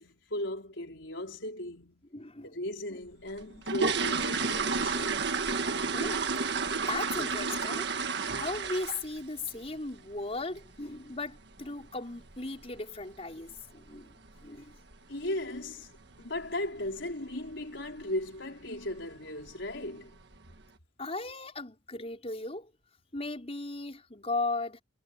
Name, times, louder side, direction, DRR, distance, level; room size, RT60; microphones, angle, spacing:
voice 1, 0.0-2.1 2.4-5.2 7.1-7.3 15.1-15.9 16.2-20.2, left 1 dB, 75° left, 5.0 m, -37 dB
voice 2, 2.1-2.5 5.9-6.3 6.8-7.9 8.3-14.1 14.4-14.7 21.0-22.7 23.1-24.8, left 2 dB, 35° left, 5.1 m, -37 dB
sound 1, 3.3-9.2 9.5-9.8 10.1-10.2 10.6-10.7 11.1-11.3 11.6-11.7 12.3-12.4 12.6-12.8 13.3-13.6 13.9-14.0 14.4-14.6 14.9-15.0 15.4-15.5 16.1-16.5 16.8-17.1 17.5-17.6 18.0-18.1 18.8-19.0 19.4-19.9 20.3-20.4, right 4 dB, 65° right, 1.7 m, -31 dB
head